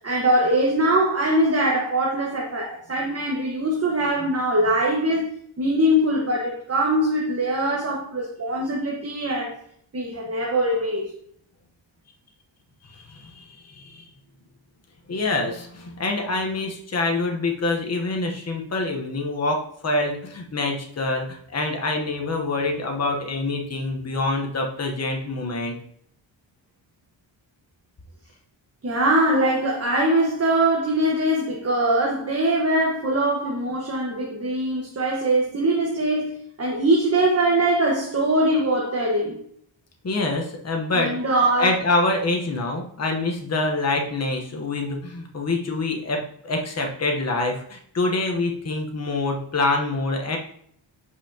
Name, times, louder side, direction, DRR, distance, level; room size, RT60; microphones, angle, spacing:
voice 1, 0.0-5.3 5.6-9.6 9.9-11.1 28.8-39.4 40.9-41.7, right 1 dB, 30° right, 1.3 m, -22 dB
voice 2, 12.9-14.1 15.1-25.8 40.0-41.2 41.6-50.4, left 2 dB, 35° left, 1.1 m, -26 dB
8.1 x 5.6 x 2.9 m
cardioid pair, 100°, 47 cm